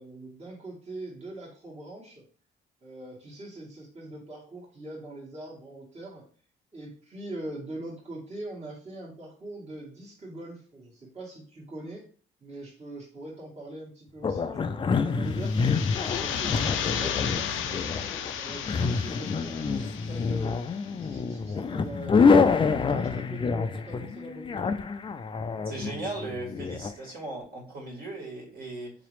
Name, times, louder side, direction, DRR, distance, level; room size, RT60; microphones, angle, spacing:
voice 1, 0.0-2.2 2.8-6.2 6.7-12.0 12.4-15.8 16.2-20.6 21.0-22.3 22.7-24.8, right 1 dB, 35° right, -5 dB, 1.5 m, -42 dB
sound 1, 14.2-26.9, left 5 dB, 25° left, 0.4 m, -27 dB
sound 2, 15.3-20.9, left 9 dB, 85° left, 0.5 m, -34 dB
voice 2, 25.7-28.9, right 2 dB, 50° right, -2 dB, 1.7 m, -37 dB
4.1 x 2.9 x 3.1 m, 0.43 s
cardioid pair, 90°, 20 cm